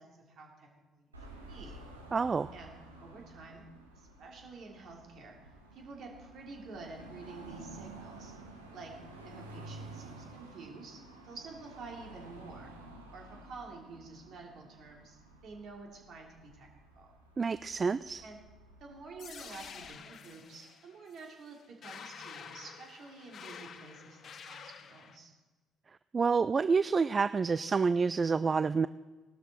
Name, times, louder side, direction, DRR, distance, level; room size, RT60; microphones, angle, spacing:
voice 1, 0.0-1.8 2.5-2.7 3.0-3.6 4.0-5.4 5.7-8.4 8.7-8.9 9.2-12.7 13.1-16.7 16.9-17.1 18.2-18.4 18.8-25.3, right 3 dB, 55° right, 1 dB, 2.9 m, -49 dB
Car passing by / Traffic noise roadway noise / Engine, 1.1-19.8, right 2 dB, 85° right, 1.4 m, -51 dB
voice 2, 2.1-2.5 17.4-18.2 26.1-28.9, right 5 dB, 35° right, 15 dB, 0.3 m, -28 dB
sound 1, 19.2-25.2, left 7 dB, 45° left, 0.9 m, -49 dB
17.5 x 12.5 x 4.4 m, 1.3 s
figure-of-eight pair, 50°, 0 cm